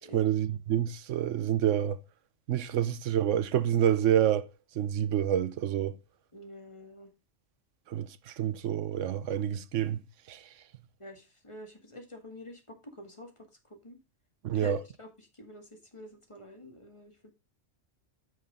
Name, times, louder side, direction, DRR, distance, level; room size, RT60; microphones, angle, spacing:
voice 1, 0.1-2.0 2.5-4.5 4.7-6.0 7.9-10.0 10.3-10.5 14.4-14.8, right 10 dB, 85° right, 1.0 m, -28 dB
voice 2, 6.3-7.1 11.0-14.0 14.5-17.3, left 1 dB, 25° left, 1.8 m, -47 dB
9.4 x 6.4 x 3.7 m
omnidirectional pair, 1.3 m